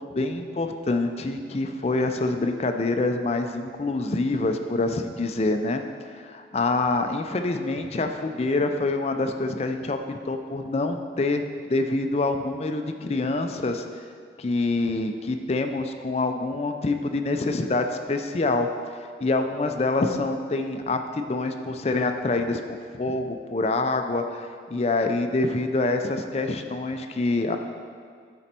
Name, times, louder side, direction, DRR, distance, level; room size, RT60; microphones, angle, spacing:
voice 1, 0.0-5.8 6.1-10.0 10.3-13.8 14.4-18.7 19.2-27.6, left 2 dB, 35° left, 6 dB, 0.4 m, -26 dB
9.2 x 4.4 x 4.3 m, 2.1 s
head